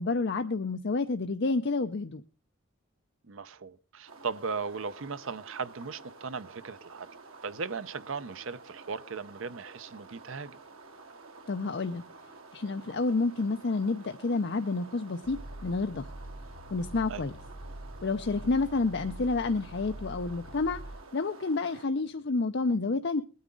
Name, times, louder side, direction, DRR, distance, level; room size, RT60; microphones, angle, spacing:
voice 1, 0.0-2.2 11.5-12.0 12.5-16.1 16.7-17.3 18.0-20.8 21.1-23.2, left 3 dB, 55° left, 0.6 m, -29 dB
voice 2, 3.2-7.1 7.4-10.6 17.1-17.3, right 5 dB, 70° right, 0.7 m, -37 dB
sound 1, 4.1-21.9, right 3 dB, 85° right, 1.8 m, -51 dB
sound 2, 15.2-21.0, right 1 dB, 30° right, 3.7 m, -44 dB
20.5 x 9.5 x 3.8 m
head